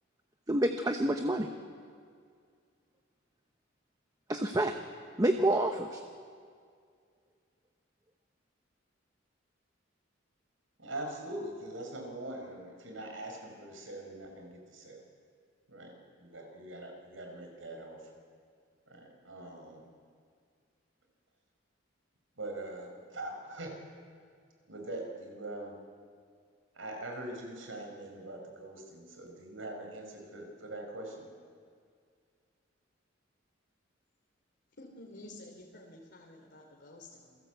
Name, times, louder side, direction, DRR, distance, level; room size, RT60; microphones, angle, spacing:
voice 1, 0.5-1.5 4.3-4.7 5.2-6.0, right 1 dB, 20° right, 5 dB, 1.0 m, -28 dB
voice 2, 10.8-15.0 15.7-18.1 18.9-19.8 22.4-23.8 24.7-25.8 26.8-31.2, right 1 dB, 80° right, 3 dB, 5.2 m, -42 dB
voice 3, 34.8-37.3, left 2 dB, 60° left, -1 dB, 3.1 m, -50 dB
27.5 x 18.0 x 8.1 m, 2.1 s
head